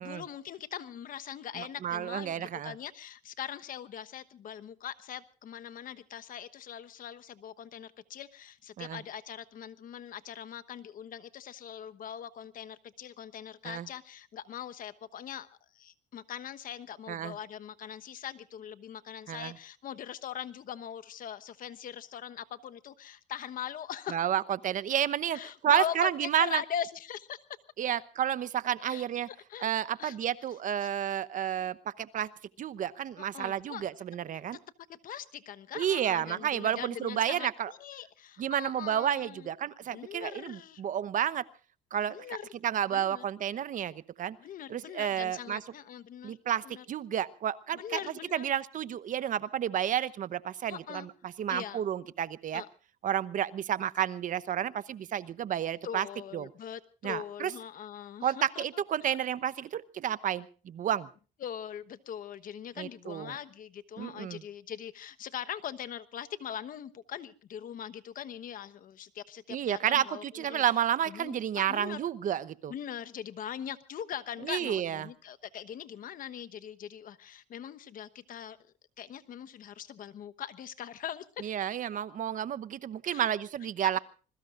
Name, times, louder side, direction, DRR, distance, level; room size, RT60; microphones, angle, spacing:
voice 1, 0.0-15.5 15.7-24.2 25.3-27.4 28.9-29.7 30.0-30.2 30.8-30.9 31.6-31.7 33.2-33.8 34.9-39.5 39.9-40.8 42.1-42.4 42.9-43.2 44.4-46.4 46.6-46.8 47.7-48.5 50.7-51.1 51.5-51.8 52.5-52.7 55.8-58.6 61.4-70.6 71.1-72.1 72.7-78.6 79.0-81.5 83.0-83.3 83.8-84.0, left 9 dB, 55° left, 12 dB, 1.2 m, -41 dB
voice 2, 1.6-2.7 8.8-9.0 13.6-13.9 17.1-17.3 19.3-19.5 24.1-26.6 27.8-29.3 29.6-32.3 32.6-34.6 35.7-37.7 38.4-41.4 41.9-42.2 42.6-44.4 44.7-45.6 46.2-48.0 48.3-52.6 53.0-56.1 56.3-56.5 57.0-57.5 58.2-61.1 62.8-63.3 64.0-64.4 69.5-72.7 74.4-75.1 81.4-84.0, right 10 dB, 50° right, 16 dB, 0.9 m, -31 dB
26.0 x 21.5 x 2.5 m, 0.36 s
cardioid pair, 110°, 17 cm